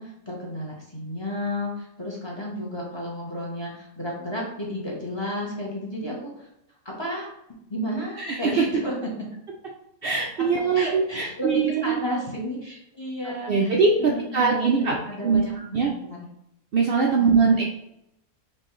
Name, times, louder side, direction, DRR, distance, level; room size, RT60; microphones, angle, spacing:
voice 1, 0.0-6.5 6.8-7.3 7.7-8.9 10.7-16.3 17.2-17.5, equal, 25° left, -3 dB, 0.8 m, -32 dB
voice 2, 8.2-8.6 10.0-12.0 13.2-15.0 15.2-15.9 16.7-17.6, right 5 dB, 85° right, -1 dB, 0.5 m, -22 dB
4.5 x 3.0 x 3.0 m, 0.80 s
omnidirectional pair, 1.5 m